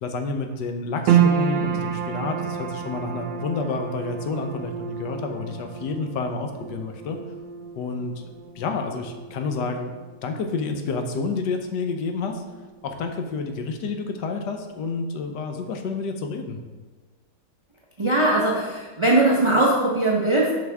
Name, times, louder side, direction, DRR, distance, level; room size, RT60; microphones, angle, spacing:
voice 1, 0.0-7.2 7.7-8.1 8.6-9.9 10.2-12.4 12.8-16.6, left 4 dB, 75° left, 5 dB, 1.3 m, -29 dB
sound 1, 1.1-13.5 13.7-14.7 15.1-15.2, right 9 dB, 90° right, 1.3 m, -29 dB
voice 2, 18.0-20.5, right 2 dB, 25° right, -4 dB, 0.7 m, -20 dB
7.7 x 5.7 x 3.5 m, 1.3 s
omnidirectional pair, 1.9 m